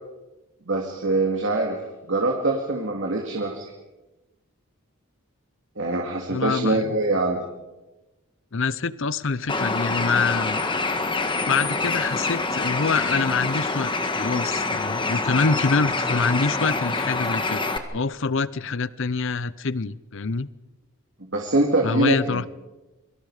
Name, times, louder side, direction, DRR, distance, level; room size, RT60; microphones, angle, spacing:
voice 1, 0.7-1.7 2.1-3.7 5.8-7.4 21.3-22.5, right 2 dB, 60° right, 0 dB, 2.7 m, -24 dB
voice 2, 6.3-7.0 8.5-10.6 11.5-13.9 14.2-17.6 17.9-20.5 21.8-22.5, left 4 dB, 60° left, 18 dB, 0.7 m, -25 dB
Bird, 9.5-17.8, left 3 dB, 20° left, 1.6 m, -26 dB
28.5 x 24.5 x 5.0 m, 1.1 s
head